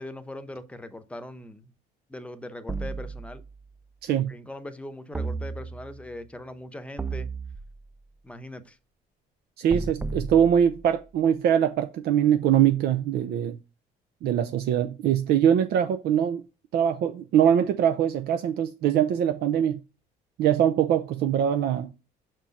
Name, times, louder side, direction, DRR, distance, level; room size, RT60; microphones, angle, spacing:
voice 1, 0.0-1.7 2.1-3.4 4.3-7.3 8.2-8.8, left 1 dB, 5° left, 0.8 m, -40 dB
sound 1, 2.7-3.8 5.1-6.1 7.0-8.1 9.7-11.1, right 4 dB, 10° right, 0.4 m, -34 dB
voice 2, 9.6-13.6 14.2-16.4 16.7-19.8 20.4-21.9, right 9 dB, 70° right, 0.6 m, -22 dB
6.1 x 4.5 x 5.2 m
cardioid pair, 110°, 17 cm